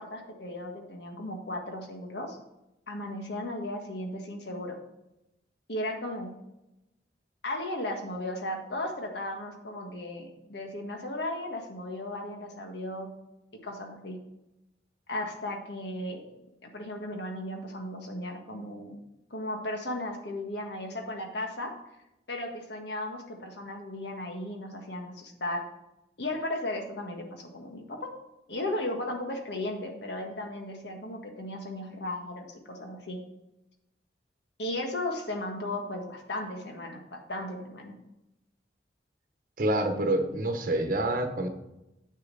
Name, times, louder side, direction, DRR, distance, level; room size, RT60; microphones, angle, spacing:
voice 1, 0.0-2.4 2.9-4.7 5.7-6.3 7.4-13.1 13.5-14.2 15.1-16.3 16.6-19.0 19.3-21.7 22.3-25.6 26.2-28.1 28.5-33.2 34.6-37.9, left 1 dB, 65° left, 3 dB, 1.6 m, -35 dB
voice 2, 39.6-41.5, right 1 dB, 50° right, 5 dB, 1.1 m, -27 dB
8.3 x 6.7 x 4.1 m, 0.92 s
head